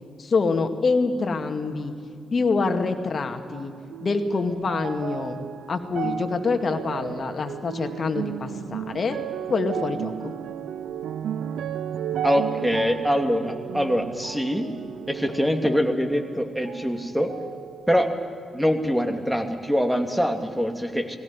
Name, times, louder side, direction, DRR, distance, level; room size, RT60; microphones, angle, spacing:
voice 1, 0.2-1.9 2.3-3.7 4.0-5.4 5.7-9.2 9.5-10.3, left 4 dB, 55° left, 6 dB, 2.1 m, -25 dB
sound 1, 3.5-17.0 17.3-18.2 18.9-19.0, right 9 dB, 75° right, 0.6 m, -34 dB
voice 2, 12.2-14.7 15.1-17.3 17.9-18.1 18.5-21.2, equal, 5° right, 5 dB, 2.9 m, -24 dB
20.0 x 17.0 x 9.5 m, 2.4 s
hypercardioid pair, 40°, 0 cm